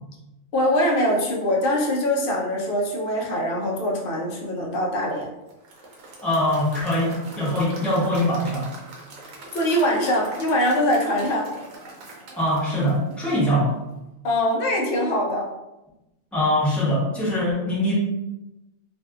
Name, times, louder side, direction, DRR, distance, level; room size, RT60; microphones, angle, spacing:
voice 1, 0.5-5.3 9.5-11.5 14.2-15.5, equal, 60° left, -2 dB, 0.6 m, -23 dB
Applause / Crowd, 5.5-13.7, right 2 dB, 80° right, 1.1 m, -42 dB
voice 2, 6.2-8.7 12.4-13.8 16.3-17.9, left 1 dB, ahead, -7 dB, 0.8 m, -22 dB
2.5 x 2.5 x 2.3 m, 0.97 s
omnidirectional pair, 1.4 m